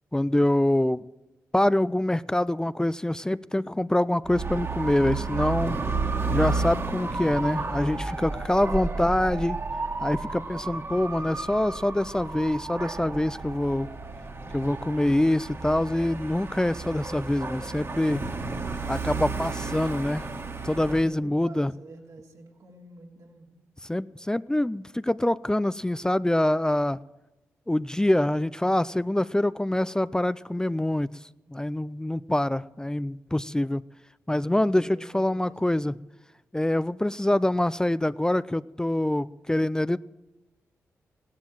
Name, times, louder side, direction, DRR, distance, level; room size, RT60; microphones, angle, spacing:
voice 1, 0.1-1.0 1.5-6.0 6.3-9.6 10.0-13.9 14.5-18.2 18.9-20.3 20.6-21.7 23.8-27.0 27.7-31.1 31.5-33.8 34.3-36.0 36.5-40.0, left 1 dB, 10° left, 16 dB, 0.5 m, -25 dB
Dog / Motorcycle, 4.2-21.0, right 3 dB, 45° right, 2.3 m, -32 dB
voice 2, 8.4-8.8 21.0-23.5 34.5-35.7, right 2 dB, 70° right, 0 dB, 3.2 m, -48 dB
16.5 x 11.5 x 7.7 m, 1.0 s
supercardioid pair, 45°, 6 cm